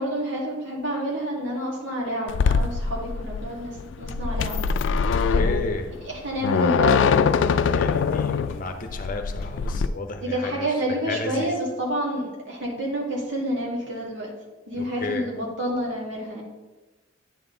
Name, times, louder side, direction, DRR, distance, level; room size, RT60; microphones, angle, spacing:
voice 1, 0.0-4.6 6.0-7.1 10.2-14.3 14.7-16.4, right 1 dB, 80° right, -3 dB, 2.1 m, -28 dB
sound 1, 2.3-9.9, left 5 dB, 75° left, 0.3 m, -23 dB
voice 2, 5.1-5.9 7.7-10.7 11.1-11.5 14.7-15.2, left 2 dB, 45° left, 6 dB, 0.7 m, -32 dB
9.6 x 4.4 x 3.8 m, 1.1 s
head